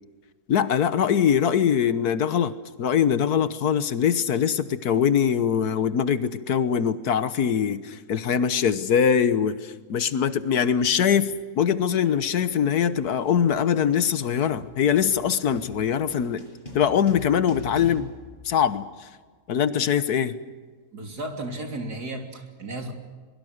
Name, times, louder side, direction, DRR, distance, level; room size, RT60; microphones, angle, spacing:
voice 1, 0.5-2.5 2.8-16.4 16.7-18.1 18.4-18.9 19.5-20.4, left 8 dB, 75° left, 13 dB, 1.6 m, -22 dB
sound 1, 10.1-10.3 10.6-19.1, left 3 dB, 30° left, 6.3 m, -44 dB
voice 2, 20.9-22.9, right 1 dB, 85° right, 4 dB, 3.7 m, -34 dB
23.5 x 22.5 x 6.6 m, 1.5 s
omnidirectional pair, 1.6 m